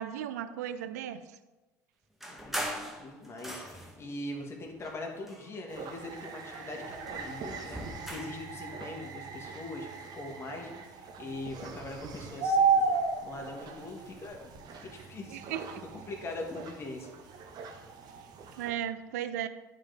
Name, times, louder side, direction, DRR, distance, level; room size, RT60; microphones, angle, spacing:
voice 1, 0.0-1.4 15.3-15.8 18.6-19.5, right 10 dB, 75° right, 12 dB, 0.4 m, -36 dB
sound 1, 2.2-4.1 4.8-5.9 6.2-8.5, equal, 5° right, 1.1 m, -41 dB
voice 2, 2.3-12.9 13.2-14.5 14.8-15.4 16.1-17.1, left 2 dB, 30° left, 0 dB, 1.5 m, -42 dB
sound 2, 5.7-18.7, right 4 dB, 50° right, 0.9 m, -35 dB
9.6 x 3.9 x 3.4 m, 1.1 s
hypercardioid pair, 65°, 9 cm